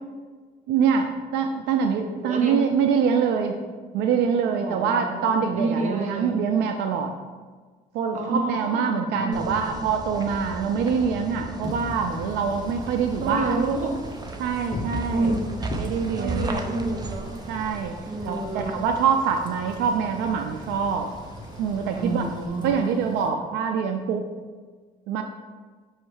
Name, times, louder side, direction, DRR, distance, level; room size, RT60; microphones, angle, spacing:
voice 1, 0.7-3.6 3.9-7.1 7.9-13.6 14.4-15.3 15.7-16.5 17.5-18.0 18.2-21.1 21.6-22.2 22.6-24.2 25.1-25.2, right 6 dB, 90° right, 5 dB, 0.4 m, -24 dB
voice 2, 2.2-2.6 4.6-6.4 8.1-9.8 13.2-14.0 15.1-15.7 16.2-17.4 18.1-18.8 21.9-23.0, right 2 dB, 45° right, 1 dB, 1.1 m, -29 dB
sound 1, 9.3-22.5, right 3 dB, 25° right, 0.5 m, -37 dB
Wind / Rain, 11.6-23.3, left 2 dB, 25° left, 0.9 m, -40 dB
6.6 x 3.1 x 4.7 m, 1.4 s
cardioid pair, 110°, 17 cm